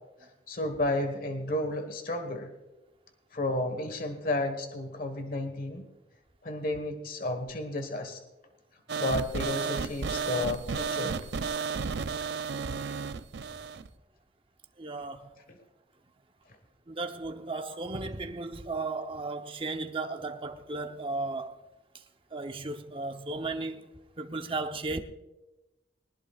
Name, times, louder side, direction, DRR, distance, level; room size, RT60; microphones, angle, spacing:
voice 1, 0.5-2.5 3.3-5.9 6.4-8.2 9.0-11.2 15.5-15.6, left 1 dB, 50° left, 1.4 m, -32 dB
sound 1, 8.9-13.9, right 5 dB, 85° right, 0.5 m, -32 dB
voice 2, 14.8-15.3 16.9-21.6 22.3-23.9 24.2-25.0, right 3 dB, 30° right, 0.8 m, -35 dB
20.5 x 19.5 x 2.4 m
head